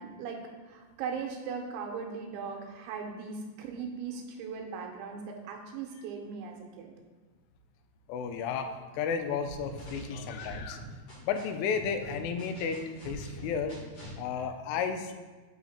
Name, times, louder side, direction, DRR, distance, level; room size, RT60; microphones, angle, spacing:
voice 1, 0.0-6.9, right 5 dB, 85° right, 2 dB, 3.0 m, -39 dB
voice 2, 8.1-10.9 11.2-13.8 14.2-15.1, left 6 dB, 90° left, 8 dB, 3.1 m, -33 dB
sound 1, 9.4-11.4 11.7-14.2, equal, 50° left, 1.9 m, -44 dB
6.0 x 5.6 x 4.1 m, 1.4 s
omnidirectional pair, 5.5 m